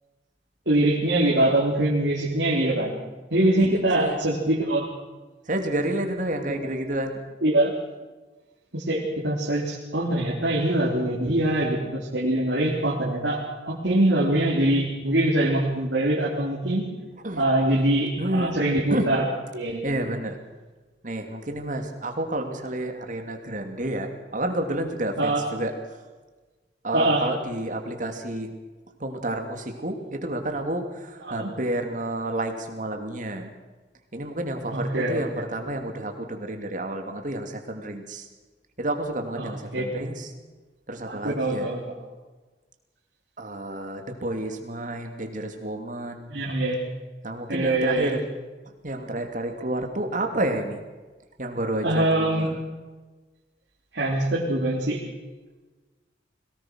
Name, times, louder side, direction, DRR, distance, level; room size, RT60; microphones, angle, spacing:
voice 1, 0.7-2.9 3.3-4.9 6.6-6.7 7.4-7.7 8.7-16.9 17.4-19.3 19.5-19.8 25.2-25.4 26.9-27.3 31.2-31.5 34.7-35.4 39.4-40.0 41.1-41.8 46.3-46.8 47.5-48.2 51.8-52.5 53.9-55.0, right 1 dB, 75° right, -5 dB, 3.8 m, -23 dB
voice 2, 5.5-7.2 17.2-17.5 18.2-18.6 18.9-19.1 19.8-20.3 21.0-25.7 26.8-28.5 29.0-33.5 34.1-38.3 38.8-40.3 40.9-41.7 43.4-46.3 47.2-48.2 48.8-50.8 51.4-52.5, right 1 dB, 45° right, 5 dB, 2.7 m, -30 dB
22.5 x 18.0 x 6.4 m, 1.3 s
head